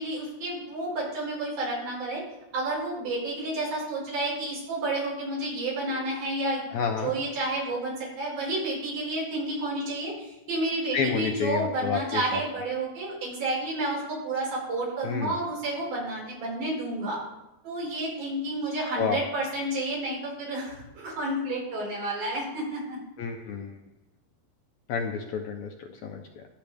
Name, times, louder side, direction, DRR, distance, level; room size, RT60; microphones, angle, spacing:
voice 1, 0.0-2.2 2.5-6.7 7.0-17.2 17.6-23.0, right 2 dB, 85° right, -5 dB, 7.1 m, -30 dB
voice 2, 6.7-7.1 10.9-12.4 15.0-15.4 19.0-19.2 23.2-23.8 24.9-26.4, left 6 dB, 70° left, 3 dB, 1.8 m, -30 dB
22.5 x 8.0 x 3.5 m, 0.94 s
omnidirectional pair, 4.1 m